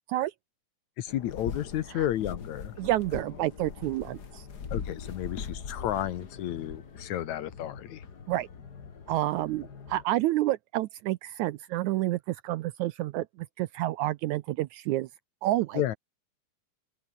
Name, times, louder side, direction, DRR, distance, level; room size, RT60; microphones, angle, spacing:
voice 1, 1.0-2.7 4.7-8.0 15.7-16.0, left 12 dB, 65° left, 2.2 m, -32 dB
sound 1, 1.1-10.0, left 6 dB, 35° left, 2.0 m, -41 dB
voice 2, 2.8-4.4 8.3-8.5 9.1-15.1 15.4-15.8, right 15 dB, 80° right, 1.8 m, -29 dB
open air
omnidirectional pair, 3.8 m